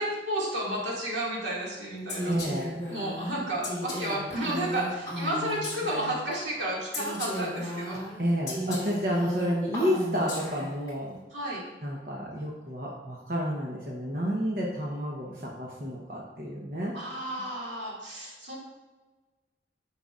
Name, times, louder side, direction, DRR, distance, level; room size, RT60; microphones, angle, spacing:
voice 1, 0.0-2.4 2.9-8.0 11.3-11.6 16.9-18.6, right 1 dB, 80° right, -4 dB, 2.2 m, -32 dB
Female speech woman speaking, 2.1-6.3 6.9-10.9, left 1 dB, 20° left, 1.8 m, -35 dB
voice 2, 2.2-2.8 8.2-11.2 11.8-16.9, equal, 50° right, -3 dB, 0.9 m, -30 dB
9.2 x 5.8 x 2.5 m, 1.3 s
head